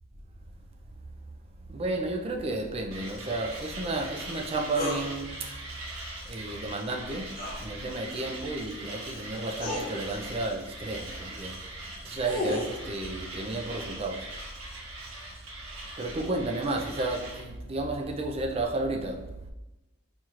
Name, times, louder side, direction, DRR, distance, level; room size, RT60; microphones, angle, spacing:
voice 1, 1.7-5.5 6.3-7.3 7.6-11.6 12.0-14.3 16.0-19.2, right 2 dB, 30° right, 0.4 m, -32 dB
Mechanisms, 2.9-17.4, right 2 dB, 90° right, 1.1 m, -42 dB
sound 1, 4.8-5.0 7.3-7.6 8.9-9.0 9.6-9.9 11.9-12.7, left 1 dB, 45° left, 1.0 m, -32 dB
4.4 x 2.9 x 2.4 m
head